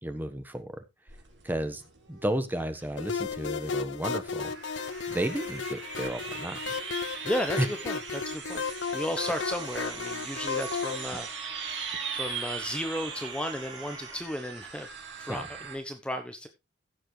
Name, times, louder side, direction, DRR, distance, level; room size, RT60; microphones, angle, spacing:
voice 1, 0.0-0.8 1.4-1.8 2.1-4.5 5.1-6.7 7.6-7.7 15.3-15.4, right 1 dB, 10° right, 9 dB, 1.2 m, -32 dB
sound 1, 1.1-15.8, right 6 dB, 70° right, 3.3 m, -40 dB
sound 2, 3.0-11.1, left 5 dB, 75° left, 0.7 m, -34 dB
voice 2, 7.2-8.6 8.9-11.8 12.1-14.9 15.2-16.5, equal, 5° left, 6 dB, 0.9 m, -34 dB
sound 3, 9.2-14.2, right 3 dB, 25° right, 3.1 m, -45 dB
15.5 x 7.1 x 3.2 m, 0.24 s
head